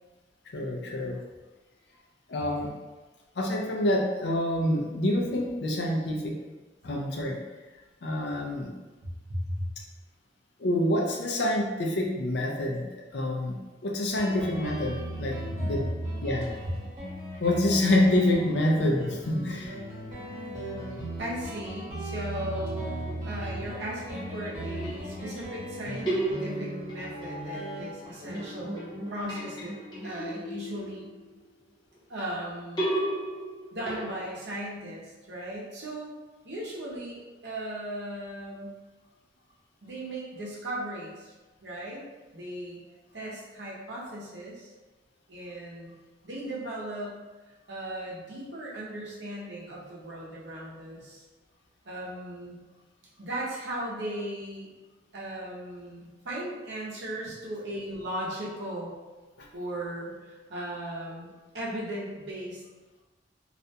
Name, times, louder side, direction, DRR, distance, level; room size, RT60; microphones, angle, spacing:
voice 1, 0.5-1.2 2.3-2.7 3.4-6.4 6.8-7.4 8.0-8.7 10.6-13.6 13.8-15.8 16.2-16.5 17.4-19.7, left 1 dB, 70° left, -1 dB, 0.4 m, -27 dB
voice 2, 9.3-9.6 15.5-15.9 21.2-29.7 30.0-31.1 32.1-32.8 33.7-36.2 36.4-38.8 39.8-41.3 41.6-42.0 42.3-42.8 43.1-44.7 45.3-45.9 46.2-47.2 47.7-51.2 51.8-52.6 53.2-54.7 55.1-58.9 59.5-62.6, right 1 dB, 75° right, -5 dB, 0.7 m, -37 dB
Guitar, 14.2-31.4, right 1 dB, 45° right, 1.1 m, -38 dB
sound 1, 24.7-25.6 26.1-28.1 28.3-31.3 32.8-34.4, right 1 dB, 20° left, 0.7 m, -34 dB
2.4 x 2.2 x 2.7 m, 1.2 s
head